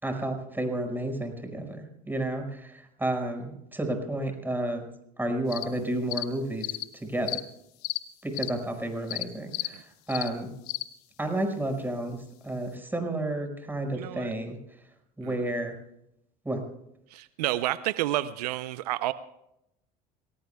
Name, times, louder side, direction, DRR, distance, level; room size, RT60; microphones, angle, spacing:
voice 1, 0.0-4.9 5.2-6.7 7.0-7.4 8.2-10.5 11.2-12.2 12.4-14.6 15.2-15.7 16.5-16.6, right 1 dB, 10° right, 5 dB, 5.4 m, -31 dB
sound 1, 5.5-5.7 6.1-6.3 6.6-6.9 7.3-7.4 7.8-8.0 8.4-8.5 9.1-9.2 9.5-9.7 10.1-10.3 10.7-10.8, left 20 dB, 80° left, 1.0 m, -32 dB
voice 2, 13.9-14.3 15.2-15.4 17.1-19.1, right 15 dB, 85° right, 14 dB, 0.6 m, -30 dB
27.5 x 18.5 x 2.3 m, 0.80 s
hypercardioid pair, 75°, 20 cm